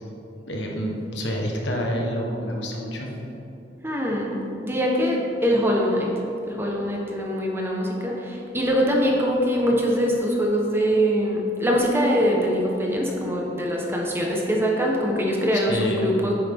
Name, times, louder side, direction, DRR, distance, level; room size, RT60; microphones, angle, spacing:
voice 1, 0.4-3.1 15.5-16.1, equal, 85° left, 0 dB, 1.5 m, -28 dB
voice 2, 3.8-4.4 4.6-6.1 6.5-16.4, equal, 15° right, -2 dB, 1.3 m, -23 dB
9.5 x 9.3 x 3.8 m, 2.9 s
head